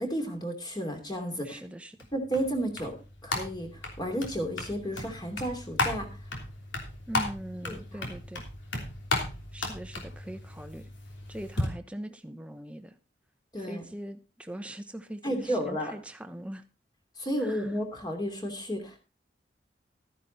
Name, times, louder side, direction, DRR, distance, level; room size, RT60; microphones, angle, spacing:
voice 1, 0.0-1.6 2.1-3.0 3.2-6.2 7.7-7.8 13.5-13.8 15.2-15.9 17.2-19.0, equal, 20° left, 4 dB, 2.9 m, -32 dB
voice 2, 1.4-2.1 7.1-8.4 9.5-10.9 11.3-12.9 13.6-16.6 17.4-17.7, right 1 dB, 5° right, 8 dB, 0.9 m, -41 dB
sound 1, 2.0-11.7, left 2 dB, 85° left, 3.2 m, -35 dB
13.0 x 10.0 x 4.0 m, 0.31 s
head